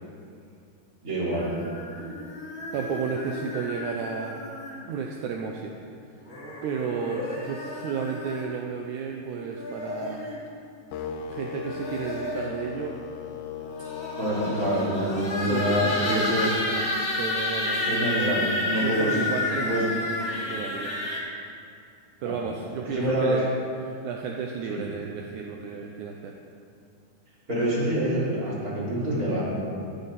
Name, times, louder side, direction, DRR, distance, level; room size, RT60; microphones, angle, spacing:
voice 1, 1.0-1.5 14.2-16.5 17.8-19.2 19.5-19.9 20.3-20.4 22.2-22.4 22.8-23.5 24.7-24.8 27.5-29.5, equal, 25° right, -8 dB, 3.9 m, -26 dB
sound 1, 1.3-5.0 6.2-8.5 9.4-10.4 11.5-12.6 13.6-21.2, left 2 dB, 30° left, 2.3 m, -31 dB
voice 2, 2.7-4.4 4.9-5.7 6.6-10.3 11.3-13.0 15.5-16.9 17.2-18.4 18.8-20.1 20.5-21.0 22.2-23.5 23.8-26.4, right 6 dB, 75° right, 1 dB, 1.9 m, -33 dB
sound 2, 10.9-17.0, left 5 dB, 80° left, 1.8 m, -38 dB
13.0 x 12.5 x 4.2 m, 2.4 s
omnidirectional pair, 4.0 m